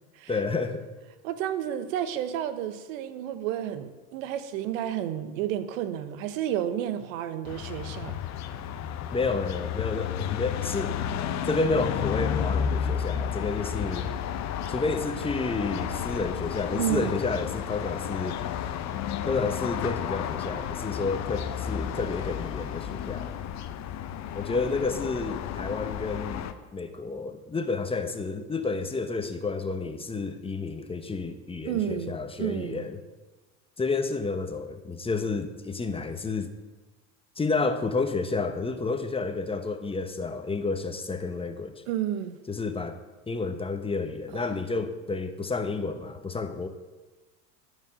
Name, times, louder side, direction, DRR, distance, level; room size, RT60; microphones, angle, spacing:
voice 1, 0.3-0.9 9.1-11.0 11.4-14.1 14.7-18.4 19.3-23.3 24.3-26.5 26.7-33.0 33.8-36.5 37.4-41.8 42.5-43.0 43.3-46.7, left 3 dB, 15° left, 7 dB, 1.0 m, -30 dB
voice 2, 1.2-8.2 16.8-17.2 31.6-32.9 41.9-42.4 44.3-44.5, right 11 dB, 80° right, 11 dB, 1.1 m, -31 dB
sound 1, 7.5-26.5, left 8 dB, 45° left, 0.9 m, -32 dB
13.0 x 5.3 x 7.5 m, 1.2 s
supercardioid pair, 110°, 39 cm